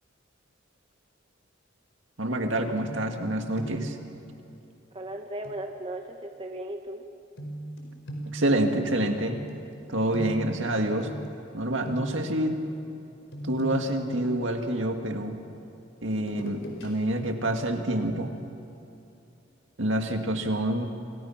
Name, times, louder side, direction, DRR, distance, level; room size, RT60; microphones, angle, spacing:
voice 1, 2.2-4.0 8.3-9.4 9.9-11.1 11.5-12.6 13.4-15.4 16.0-18.3 19.8-20.9, right 1 dB, 70° right, 4 dB, 2.3 m, -27 dB
sound 1, 2.8-3.3 3.5-4.0 5.4-5.6 7.4-11.5 11.8-12.4 13.3-15.1 16.2-16.9 17.3-17.4, right 1 dB, 70° left, 4.9 m, -39 dB
voice 2, 4.9-7.0, right 1 dB, 30° right, 3 dB, 1.5 m, -36 dB
29.5 x 27.0 x 6.0 m, 2.8 s
head